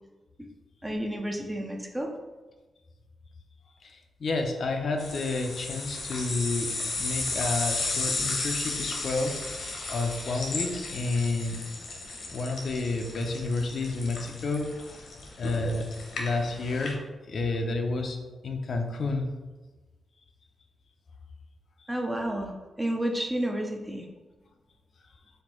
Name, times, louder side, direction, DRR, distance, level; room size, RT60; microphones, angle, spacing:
voice 1, 0.8-2.1 21.9-22.5 22.8-24.1, right 1 dB, 10° right, 2 dB, 0.4 m, -30 dB
voice 2, 3.8-9.6 9.9-11.6 12.3-14.7 15.4-15.9 16.1-17.0 17.3-18.2 18.4-19.3, left 3 dB, 50° left, 4 dB, 0.5 m, -30 dB
sound 1, 5.0-16.9, left 3 dB, 70° left, 0.9 m, -34 dB
4.3 x 2.6 x 4.3 m, 1.2 s
wide cardioid pair, 160°, 0 cm